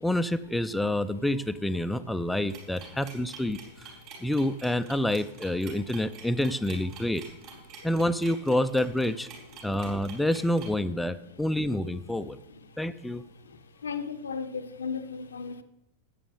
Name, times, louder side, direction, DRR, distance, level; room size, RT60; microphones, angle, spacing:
voice 1, 0.0-3.9 4.2-7.2 7.8-9.3 9.6-12.4 12.8-13.2, left 1 dB, 5° left, 0.4 m, -28 dB
sound 1, 2.5-10.7, right 7 dB, 40° right, 4.2 m, -47 dB
voice 2, 13.4-15.6, left 5 dB, 70° left, 0.7 m, -36 dB
15.0 x 9.1 x 3.5 m
figure-of-eight pair, 90°, 0 cm